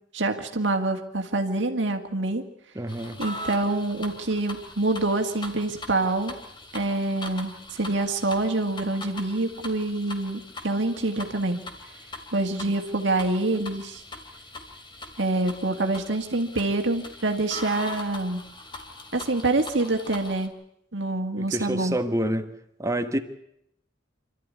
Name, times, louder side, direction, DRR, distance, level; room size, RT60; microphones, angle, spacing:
voice 1, 0.1-2.4 3.2-6.3 6.7-11.6 12.3-14.0 15.2-18.4 19.1-20.5 20.9-22.0, right 2 dB, 70° right, 2.0 m, -26 dB
voice 2, 2.7-3.2 21.4-22.5 22.8-23.2, right 1 dB, 15° right, 1.3 m, -27 dB
sound 1, 2.9-20.5, left 2 dB, 25° left, 2.5 m, -41 dB
26.5 x 13.0 x 9.7 m
head